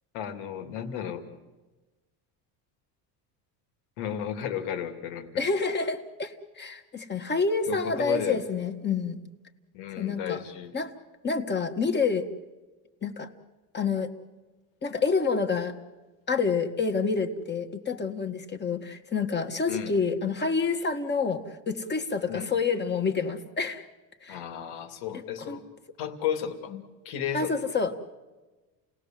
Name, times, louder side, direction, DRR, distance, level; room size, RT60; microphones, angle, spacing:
voice 1, 0.1-1.2 4.0-5.5 7.7-8.4 9.7-10.7 19.7-20.0 22.3-22.5 24.3-25.6 26.0-26.7 27.0-27.6, left 9 dB, 85° left, 7 dB, 2.7 m, -33 dB
voice 2, 5.4-9.2 10.0-10.4 10.7-10.9 11.2-12.3 13.0-13.3 13.7-14.1 14.8-15.8 16.3-23.9 24.2-24.4 25.1-25.6 27.3-27.9, left 4 dB, 25° left, 5 dB, 1.7 m, -28 dB
29.0 x 18.5 x 7.6 m, 1.2 s
cardioid pair, 135°, 43 cm